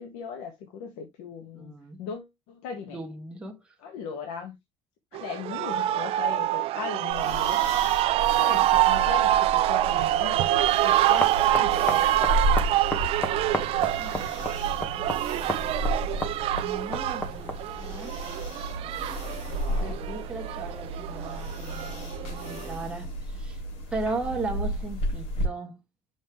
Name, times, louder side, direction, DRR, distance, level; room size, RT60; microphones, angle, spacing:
voice 1, 0.0-3.0 3.8-4.5 5.1-7.6 8.3-12.1 19.5-20.0, left 6 dB, 85° left, 1.7 m, -38 dB
voice 2, 1.5-2.0 2.9-3.7 13.7-18.2 19.7-23.6 23.9-25.8, right 3 dB, 10° right, 1.5 m, -38 dB
sound 1, 5.1-22.7, right 14 dB, 50° right, 0.6 m, -26 dB
sound 2, 7.1-25.5, equal, 65° left, 4.2 m, -33 dB
sound 3, 10.4-17.8, equal, 15° left, 1.3 m, -35 dB
7.4 x 5.5 x 3.2 m
cardioid pair, 160°, 12 cm